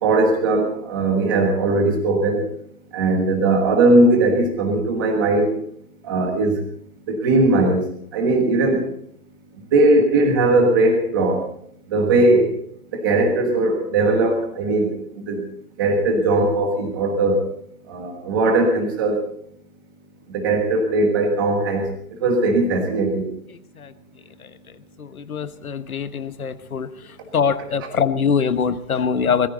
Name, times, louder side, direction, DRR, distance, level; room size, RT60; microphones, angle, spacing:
voice 1, 0.0-2.4 2.9-5.5 6.0-6.6 7.1-7.8 8.1-8.8 9.7-11.4 11.9-12.5 12.9-15.4 15.8-17.4 17.9-19.2 20.3-21.9 22.2-23.3, right 2 dB, 15° right, 2 dB, 1.4 m, -19 dB
voice 2, 25.3-26.9 27.3-29.5, left 6 dB, 60° left, 13 dB, 1.2 m, -22 dB
21.0 x 14.0 x 4.0 m, 0.65 s
hypercardioid pair, 170°, 47 cm